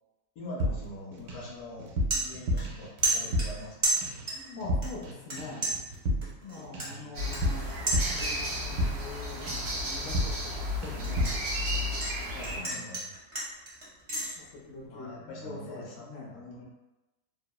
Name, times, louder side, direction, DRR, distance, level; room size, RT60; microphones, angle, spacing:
voice 1, 0.4-4.0 6.8-7.5 12.3-13.0 14.8-16.1 16.3-16.7, left 1 dB, 80° left, -3 dB, 1.1 m, -44 dB
sound 1, 0.6-1.5 1.8-3.7 4.0-4.3 4.6-5.1 5.4-9.2 9.5-9.8 10.1-10.6 10.8-11.5, equal, 90° right, 1.1 m, -32 dB
sound 2, 1.2-1.4 1.7-2.8 3.0-4.5 4.8-5.4 5.6-8.5 8.9-9.3 9.7-12.1 12.4-14.3, right 2 dB, 40° right, 0.4 m, -32 dB
voice 2, 4.3-5.6 6.4-7.7 8.1-11.9 12.6-13.1 14.4-16.4, left 3 dB, 55° left, -4 dB, 0.7 m, -44 dB
sound 3, 7.1-12.6, left 1 dB, 65° right, 0.9 m, -33 dB
2.9 x 2.0 x 2.2 m, 1.0 s
omnidirectional pair, 1.5 m